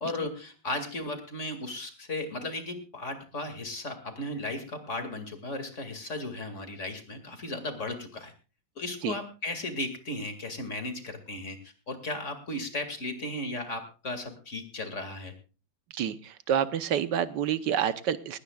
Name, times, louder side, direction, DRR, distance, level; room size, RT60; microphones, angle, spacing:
voice 1, 0.0-8.3 8.8-15.3, left 2 dB, 45° left, 7 dB, 2.6 m, -35 dB
voice 2, 15.9-18.4, right 9 dB, 80° right, 13 dB, 1.5 m, -28 dB
20.0 x 17.0 x 2.4 m, 0.33 s
omnidirectional pair, 1.9 m